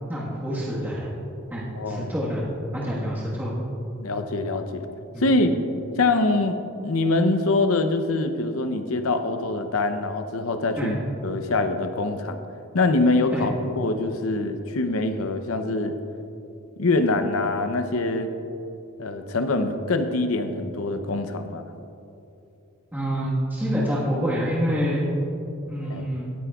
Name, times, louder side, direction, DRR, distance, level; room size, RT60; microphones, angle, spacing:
voice 1, 0.1-1.1 1.5-2.4 2.7-3.5 5.1-5.2 10.7-10.9 13.3-13.4 22.9-25.0 25.7-26.3, equal, 10° right, -7 dB, 1.5 m, -27 dB
voice 2, 1.8-2.1 4.0-4.9 5.2-5.6 6.0-11.0 11.2-12.4 12.7-15.9 16.8-18.3 19.0-21.6 25.9-26.1, left 2 dB, 80° left, 8 dB, 0.7 m, -24 dB
17.0 x 9.6 x 2.4 m, 2.7 s
head